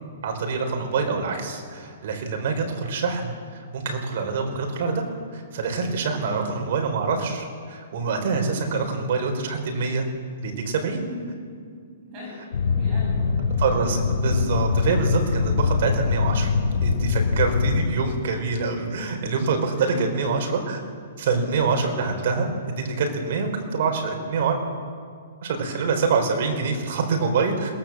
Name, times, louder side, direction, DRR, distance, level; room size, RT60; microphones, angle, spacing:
voice 1, 0.2-3.4 3.7-5.0 5.3-10.0 10.4-11.0 13.6-16.5 16.8-20.8 21.2-22.5 22.8-24.6 25.4-27.7, right 4 dB, 50° right, 4 dB, 4.3 m, -25 dB
voice 2, 6.1-6.5 11.2-11.3 11.7-11.8 12.1-13.3 19.7-20.4, left 1 dB, 25° right, -4 dB, 7.2 m, -38 dB
sound 1, 12.5-17.9, left 5 dB, 85° left, 4.7 m, -23 dB
21.5 x 18.0 x 7.4 m, 2.1 s
hypercardioid pair, 165°, 0 cm